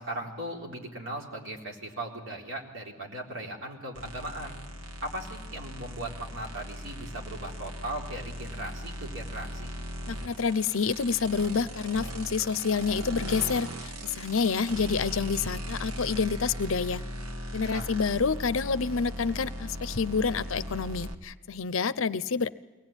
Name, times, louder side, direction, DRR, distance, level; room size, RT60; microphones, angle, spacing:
voice 1, 0.0-4.6 5.0-9.7 17.7-17.9, right 1 dB, 60° right, -1 dB, 4.0 m, -38 dB
sound 1, 3.9-21.1, equal, 85° right, 1.9 m, -38 dB
voice 2, 10.1-17.0 17.5-22.5, left 5 dB, 60° left, 15 dB, 0.6 m, -28 dB
23.5 x 18.5 x 9.0 m, 1.3 s
head